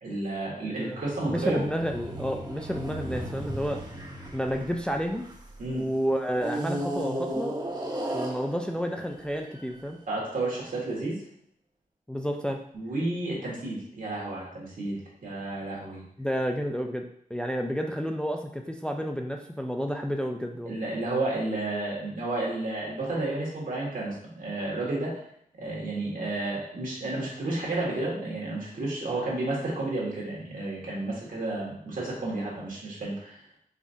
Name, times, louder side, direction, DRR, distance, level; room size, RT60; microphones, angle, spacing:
voice 1, 0.0-1.6 5.6-5.8 10.1-11.2 12.7-16.0 20.7-25.2 25.6-33.4, right 2 dB, 70° right, -4 dB, 1.5 m, -31 dB
voice 2, 0.8-3.8 4.3-5.3 5.7-7.6 8.1-10.0 12.1-12.6 16.2-20.8, equal, 5° left, 3 dB, 0.3 m, -30 dB
sound 1, 0.9-5.6 6.4-9.8, right 1 dB, 30° right, 0.8 m, -35 dB
4.9 x 2.6 x 2.6 m, 0.68 s
wide cardioid pair, 70°, 15 cm